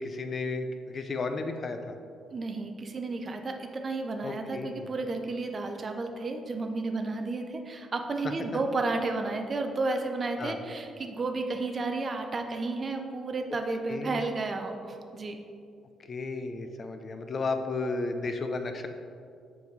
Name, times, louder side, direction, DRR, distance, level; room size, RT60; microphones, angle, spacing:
voice 1, 0.0-2.0 4.2-4.9 10.4-10.6 13.9-14.2 16.1-18.9, left 3 dB, 35° left, 7 dB, 0.4 m, -33 dB
voice 2, 2.3-15.4, right 3 dB, 30° right, 5 dB, 0.5 m, -32 dB
7.0 x 5.2 x 3.2 m, 2.4 s
cardioid pair, 135°, 0 cm